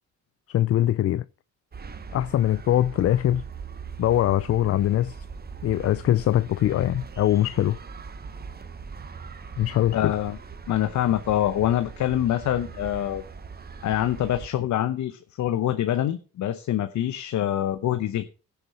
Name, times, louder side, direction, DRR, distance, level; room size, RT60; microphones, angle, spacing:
voice 1, 0.5-1.2 2.1-3.4 4.0-5.3 5.6-7.8 9.6-10.1, left 12 dB, 50° left, 0.4 m, -22 dB
sound 1, 1.7-14.5, right 5 dB, 30° right, 1.1 m, -40 dB
voice 2, 9.9-10.4 10.7-13.2 13.8-18.2, left 12 dB, 70° left, 0.9 m, -25 dB
16.0 x 6.9 x 4.2 m
cardioid pair, 90°, 30 cm